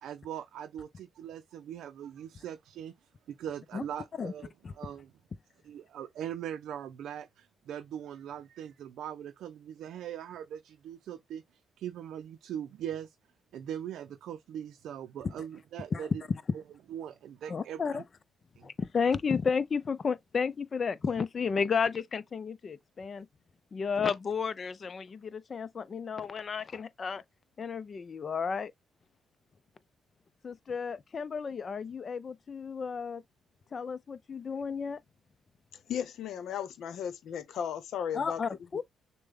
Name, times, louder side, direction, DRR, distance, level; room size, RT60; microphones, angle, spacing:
voice 1, 0.0-5.1 5.6-13.1 13.5-16.2 16.5-16.6 16.9-18.0 18.6-18.7, right 9 dB, 75° right, 0.5 m, -41 dB
voice 2, 17.5-18.0 18.6-23.3 23.7-27.2 27.6-28.7 30.4-33.2 33.7-35.0 38.1-38.8, left 5 dB, 40° left, 0.6 m, -32 dB
voice 3, 35.9-38.4, left 8 dB, 75° left, 0.9 m, -35 dB
6.6 x 2.2 x 3.6 m
cardioid pair, 90°, 0 cm